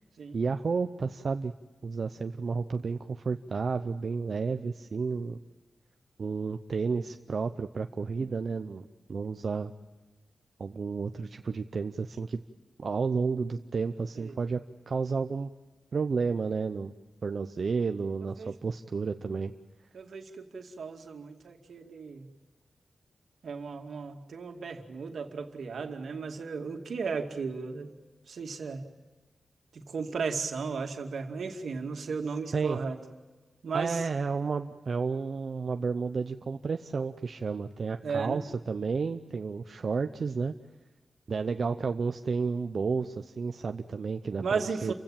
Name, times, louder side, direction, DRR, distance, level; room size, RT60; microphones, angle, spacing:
voice 1, 0.3-1.5 1.8-5.4 6.2-9.7 10.6-12.4 12.8-15.5 15.9-16.9 17.2-19.5 32.5-32.8 33.7-40.5 41.3-44.4 44.8-44.9, right 5 dB, 50° right, 7 dB, 0.7 m, -31 dB
voice 2, 19.9-22.3 23.4-27.9 28.3-28.8 29.7-33.0 33.6-34.1 38.0-38.4 44.4-44.9, right 5 dB, 75° right, 4 dB, 2.4 m, -35 dB
29.5 x 16.5 x 8.9 m, 1.2 s
wide cardioid pair, 175°, 0 cm